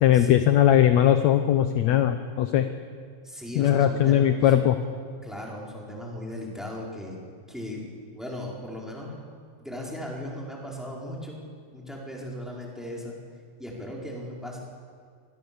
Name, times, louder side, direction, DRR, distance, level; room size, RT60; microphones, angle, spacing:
voice 1, 0.0-2.7 3.6-4.8, left 11 dB, 70° left, 8 dB, 1.8 m, -20 dB
voice 2, 3.2-4.7 5.2-7.2 7.5-7.8 8.1-9.2 9.6-11.4 11.7-13.2 13.6-14.6, left 1 dB, ahead, -3 dB, 4.6 m, -37 dB
25.5 x 19.5 x 7.2 m, 2.1 s
omnidirectional pair, 4.1 m